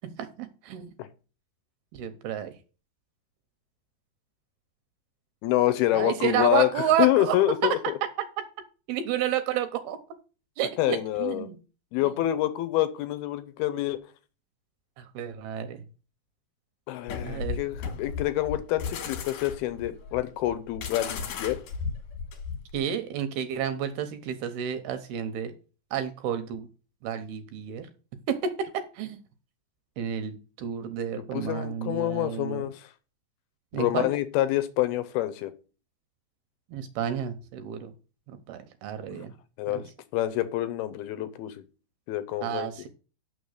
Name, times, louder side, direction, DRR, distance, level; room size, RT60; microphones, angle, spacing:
voice 1, 0.2-0.9 2.0-2.5 5.9-7.4 8.9-10.0 10.6-11.6 15.0-15.8 17.2-17.6 22.7-25.5 25.9-26.7 27.0-27.9 28.3-29.2 30.0-32.6 33.7-34.1 36.7-37.9 38.3-39.3 39.7-39.8 42.4-42.9, right 9 dB, 75° right, 9 dB, 2.5 m, -30 dB
voice 2, 5.4-8.0 10.8-11.5 11.9-14.0 16.9-21.6 31.1-32.9 33.7-35.5 39.1-39.3 39.6-39.8 40.1-41.6 42.1-42.7, left 14 dB, 80° left, 13 dB, 2.4 m, -27 dB
sound 1, 17.1-22.8, left 5 dB, 60° left, 2.6 m, -35 dB
7.0 x 6.3 x 6.5 m, 0.34 s
omnidirectional pair, 4.9 m